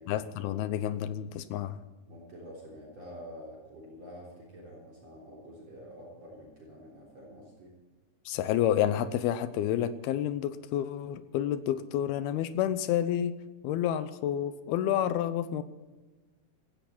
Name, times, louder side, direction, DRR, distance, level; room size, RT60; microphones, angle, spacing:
voice 1, 0.1-1.8 8.3-13.4 13.6-15.6, left 11 dB, 80° left, 13 dB, 2.7 m, -29 dB
voice 2, 2.1-7.7, equal, 40° right, -3 dB, 4.5 m, -47 dB
16.0 x 16.0 x 4.4 m, 1.2 s
omnidirectional pair, 4.6 m